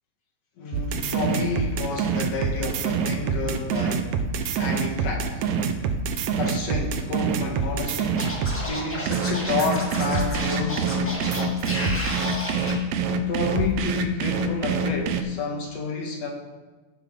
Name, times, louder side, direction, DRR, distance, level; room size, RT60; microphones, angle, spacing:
voice 1, 0.6-4.2 4.6-5.5 6.4-12.1 13.1-16.3, left 3 dB, 60° left, 2 dB, 2.1 m, -30 dB
sound 1, 0.7-8.6 9.1-15.2, right 5 dB, 75° right, 1.6 m, -25 dB
Scratching (performance technique), 8.2-12.7, equal, 10° left, 0.5 m, -32 dB
16.0 x 7.2 x 3.7 m, 1.2 s
omnidirectional pair, 3.8 m